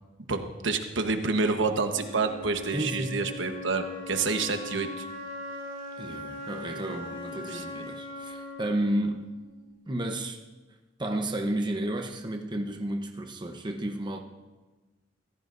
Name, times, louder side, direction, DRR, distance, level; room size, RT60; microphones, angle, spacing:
voice 1, 0.3-5.1 7.5-7.8, right 4 dB, 70° right, 6 dB, 1.2 m, -28 dB
Wind instrument woodwind instrument, 1.8-9.9, left 1 dB, 50° left, 4.7 m, -40 dB
voice 2, 2.7-3.4 6.0-9.3 9.9-10.4 11.0-14.2, right 1 dB, 25° right, 3 dB, 0.9 m, -32 dB
23.5 x 15.5 x 2.6 m, 1.2 s
head